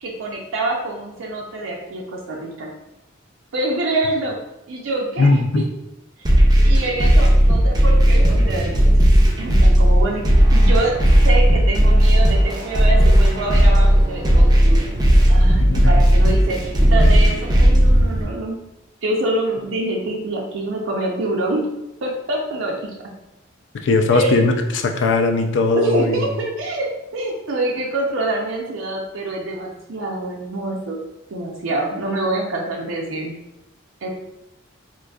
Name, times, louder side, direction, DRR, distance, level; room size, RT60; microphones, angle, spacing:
voice 1, 0.0-2.7 3.5-4.4 4.7-5.4 6.7-10.2 10.5-10.9 11.2-14.9 15.3-18.6 19.0-21.6 22.0-22.9 24.1-24.5 25.7-33.3 34.0-34.1, right 2 dB, 85° right, -1 dB, 0.5 m, -26 dB
voice 2, 5.2-5.6 15.6-15.9 23.8-26.4, left 3 dB, 70° left, 5 dB, 0.4 m, -18 dB
sound 1, 6.2-18.2, equal, 20° right, 0.4 m, -14 dB
3.8 x 2.5 x 2.3 m, 0.91 s
head